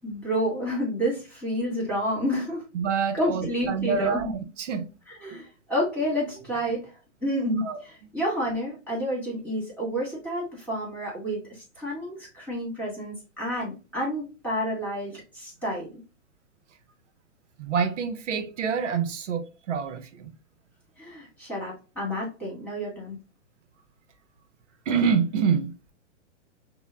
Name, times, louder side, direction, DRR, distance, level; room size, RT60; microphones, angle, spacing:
voice 1, 0.0-2.6 3.1-4.3 5.2-6.9 7.2-16.0 21.0-23.2, equal, 5° left, 1.9 m, -30 dB
voice 2, 2.7-4.9 5.3-5.4 7.6-7.8 17.6-20.3 24.9-25.7, right 6 dB, 75° right, 0.8 m, -27 dB
5.4 x 2.2 x 2.2 m
hypercardioid pair, 155°, 37 cm